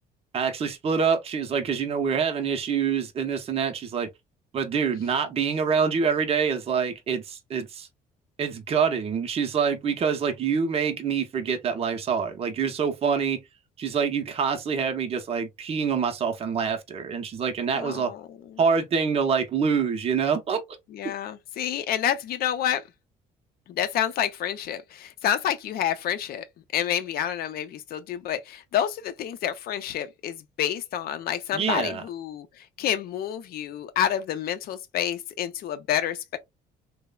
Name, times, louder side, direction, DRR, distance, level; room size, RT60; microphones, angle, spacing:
voice 1, 0.3-4.1 4.5-7.9 8.4-13.4 13.8-18.1 18.6-20.6 21.0-21.1 31.5-32.0, right 6 dB, 35° right, 0.6 m, -26 dB
voice 2, 17.7-18.6 20.9-22.8 23.7-26.4 26.7-36.4, left 10 dB, 65° left, 0.5 m, -29 dB
3.0 x 2.0 x 2.2 m
cardioid pair, 110°, 17 cm